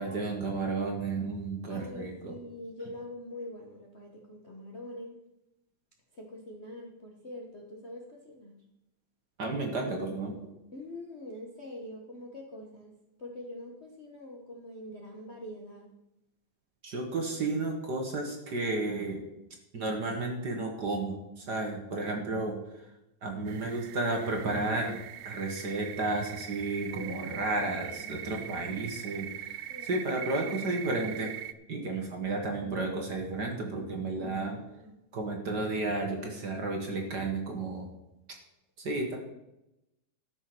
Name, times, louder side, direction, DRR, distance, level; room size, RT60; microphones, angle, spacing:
voice 1, 0.0-2.3 9.4-10.4 16.8-19.2 19.7-22.6 23.2-25.0 25.2-31.3 31.7-34.6 35.1-37.9 38.8-39.2, right 2 dB, 40° right, 2 dB, 1.6 m, -32 dB
voice 2, 1.7-5.2 6.1-8.6 10.7-12.9 13.2-15.9 26.9-29.0 29.7-30.0 34.2-35.0, left 1 dB, 80° left, -1 dB, 0.6 m, -44 dB
sound 1, 23.5-31.5, right 12 dB, 85° right, 1.5 m, -42 dB
13.5 x 6.5 x 6.1 m, 0.90 s
omnidirectional pair, 3.6 m